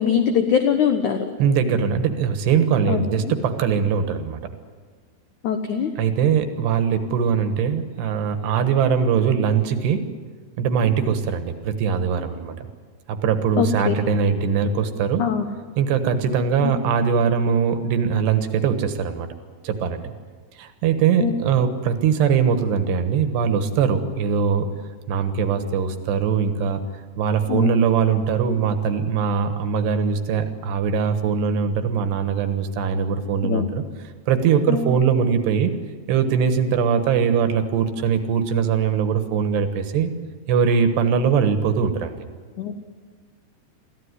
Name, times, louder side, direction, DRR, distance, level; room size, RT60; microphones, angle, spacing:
voice 1, 0.0-1.3 2.9-3.3 5.4-5.9 13.6-14.0 15.2-15.5 16.6-16.7 21.2-21.4 27.5-27.8 33.4-33.7 34.7-35.0 42.6-42.7, left 7 dB, 80° left, 6 dB, 1.7 m, -22 dB
voice 2, 1.4-4.4 6.0-10.1 10.6-12.7 13.1-15.2 15.8-19.3 19.6-20.0 20.5-24.7 25.1-26.8 27.2-33.8 34.3-35.7 36.1-40.1 40.5-42.2, right 6 dB, 75° right, 8 dB, 3.3 m, -21 dB
23.0 x 15.0 x 9.7 m, 1.5 s
omnidirectional pair, 5.1 m